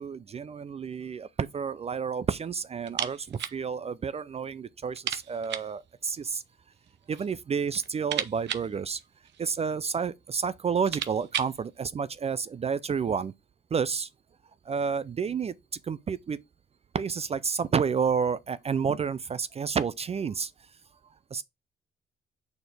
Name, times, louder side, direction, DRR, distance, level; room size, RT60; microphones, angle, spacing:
voice 1, 0.0-6.4 7.1-9.0 9.4-13.3 13.7-14.1 14.7-15.5 15.8-16.4 16.9-20.5 21.3-21.4, right 6 dB, 30° right, 0.4 m, -30 dB
sound 1, 2.8-3.6 3.9-4.0 4.3-4.4 4.9-5.8 6.7-7.3 7.6-9.6 10.3-10.4 10.7-11.6, right 10 dB, 60° right, 0.7 m, -35 dB
6.8 x 4.2 x 3.3 m
cardioid pair, 90°, 20 cm